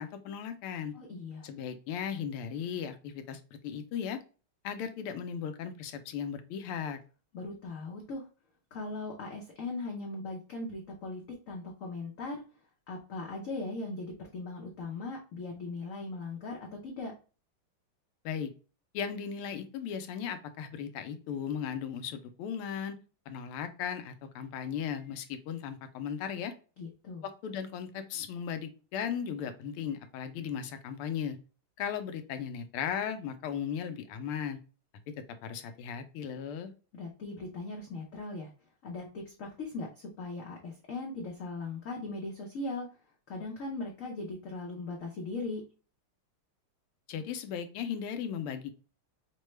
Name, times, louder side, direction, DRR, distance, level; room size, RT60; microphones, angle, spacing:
voice 1, 0.0-0.9 1.4-4.2 4.6-7.0 18.2-18.5 18.9-23.0 23.3-26.5 27.2-31.4 31.8-34.6 35.4-36.7 47.1-48.7, left 8 dB, 90° left, 9 dB, 1.5 m, -36 dB
voice 2, 0.9-1.5 7.3-8.3 8.7-11.2 11.5-12.4 12.9-17.1 26.8-27.2 36.9-38.5 38.8-42.9 43.3-45.6, left 3 dB, 65° left, -1 dB, 0.8 m, -39 dB
5.3 x 2.2 x 3.1 m, 0.34 s
omnidirectional pair, 2.4 m